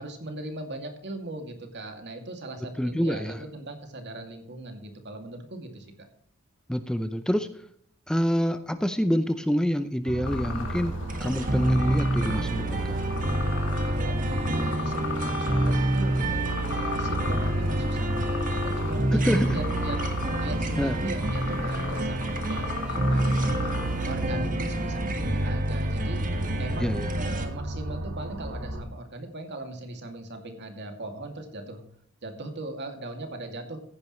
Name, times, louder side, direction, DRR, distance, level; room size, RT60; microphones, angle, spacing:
voice 1, 0.0-6.1 13.9-16.2 16.6-20.0 20.4-26.2 26.6-31.8 32.2-33.8, right 2 dB, 55° right, 5 dB, 2.4 m, -39 dB
voice 2, 2.8-3.4 6.7-7.5 8.1-10.9 11.2-13.0 19.1-19.6 20.8-21.0 26.8-27.1, equal, 5° left, 10 dB, 0.5 m, -27 dB
sound 1, 10.0-28.8, right 1 dB, 75° right, 2.0 m, -35 dB
sound 2, 10.2-24.2, left 5 dB, 60° left, 2.5 m, -38 dB
sound 3, 11.1-27.4, right 1 dB, 40° right, 1.6 m, -28 dB
15.0 x 10.5 x 3.1 m, 0.65 s
head